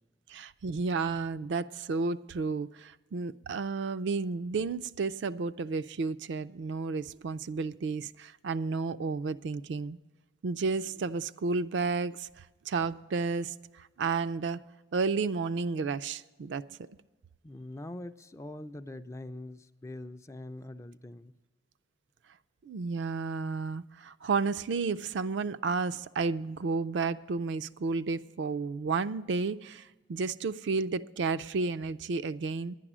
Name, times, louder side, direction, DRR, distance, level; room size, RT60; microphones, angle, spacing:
voice 1, 0.3-10.0 10.4-14.6 14.9-16.8 22.6-32.8, right 4 dB, 70° right, 12 dB, 0.4 m, -32 dB
voice 2, 17.4-21.4, left 1 dB, 15° left, 10 dB, 0.3 m, -43 dB
11.0 x 10.0 x 6.1 m, 1.2 s
head